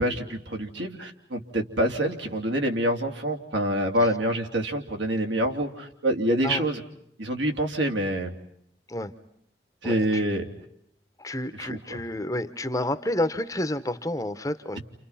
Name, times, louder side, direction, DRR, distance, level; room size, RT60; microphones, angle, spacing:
voice 1, 0.0-6.8 7.2-8.3 9.8-10.4 11.6-12.0, right 1 dB, 80° right, 3 dB, 3.1 m, -26 dB
voice 2, 9.8-10.2 11.2-14.8, left 1 dB, 20° left, 10 dB, 1.0 m, -30 dB
30.0 x 29.0 x 5.7 m, 0.73 s
head